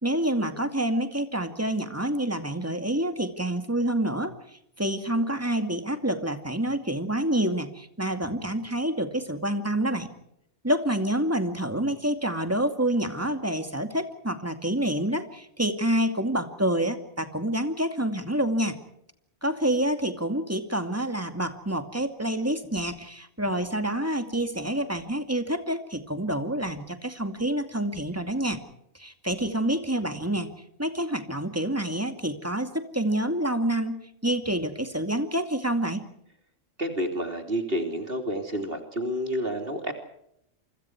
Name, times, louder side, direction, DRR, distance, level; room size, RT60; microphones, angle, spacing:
voice 1, 0.0-4.3 4.8-10.1 10.6-18.8 19.4-28.6 28.9-30.5 30.8-36.1, right 1 dB, 10° right, 7 dB, 2.3 m, -27 dB
voice 2, 36.8-39.9, equal, 50° right, 5 dB, 3.3 m, -29 dB
28.5 x 25.0 x 4.7 m, 0.75 s
omnidirectional pair, 1.3 m